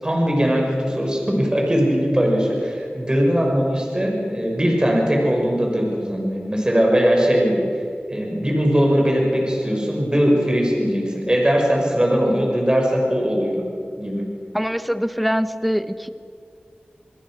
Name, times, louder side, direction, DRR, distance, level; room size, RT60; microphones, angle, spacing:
voice 1, 0.0-7.6 8.1-13.6 14.0-14.3, equal, 25° right, 0 dB, 6.3 m, -20 dB
voice 2, 14.5-16.1, equal, ahead, 11 dB, 1.1 m, -23 dB
28.5 x 21.5 x 6.5 m, 2.4 s
wide cardioid pair, 50°, 4 cm